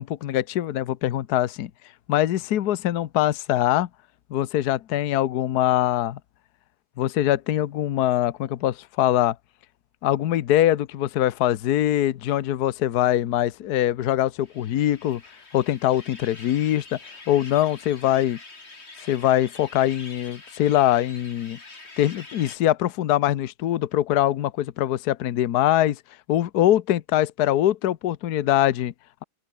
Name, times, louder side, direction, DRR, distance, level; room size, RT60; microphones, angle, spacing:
voice 1, 0.0-1.7 2.1-3.9 4.3-6.2 7.0-9.3 10.0-15.2 15.5-17.0 17.3-18.4 19.1-21.6 22.0-26.0 26.3-28.9, left 12 dB, 65° left, 1.3 m, -23 dB
sound 1, 14.4-22.6, left 3 dB, 35° left, 3.1 m, -45 dB
open air
omnidirectional pair, 2.0 m